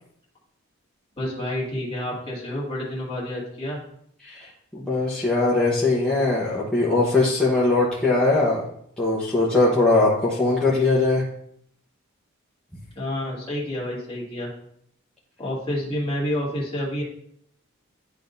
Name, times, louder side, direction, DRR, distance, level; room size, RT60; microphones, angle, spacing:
voice 1, 1.2-3.8 13.0-14.5 15.4-17.0, left 1 dB, 25° left, -5 dB, 2.1 m, -29 dB
voice 2, 4.2-8.6 9.0-11.2, left 2 dB, 5° left, -9 dB, 1.0 m, -21 dB
11.0 x 3.7 x 2.7 m, 0.68 s
head